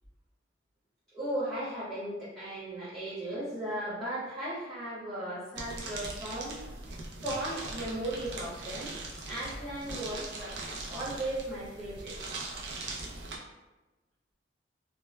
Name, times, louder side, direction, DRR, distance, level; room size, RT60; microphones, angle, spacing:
voice 1, 1.1-6.7 7.2-9.0 9.3-10.6 10.9-12.4, right 1 dB, 15° right, -13 dB, 1.0 m, -36 dB
sound 1, 5.5-13.4, right 3 dB, 55° right, 0.5 m, -40 dB
2.3 x 2.1 x 3.1 m, 1.1 s
head